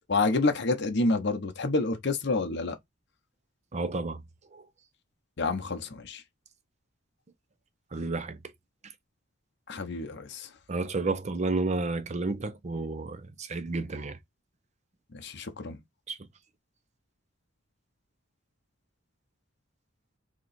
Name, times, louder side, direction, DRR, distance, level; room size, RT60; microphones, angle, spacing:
voice 1, 0.1-2.8 5.4-6.2 9.7-10.5 15.1-15.8, left 3 dB, 60° left, 0.8 m, -28 dB
voice 2, 3.7-4.2 7.9-8.4 10.7-14.2 16.1-16.2, right 3 dB, 35° right, 0.6 m, -31 dB
3.0 x 2.9 x 4.1 m
head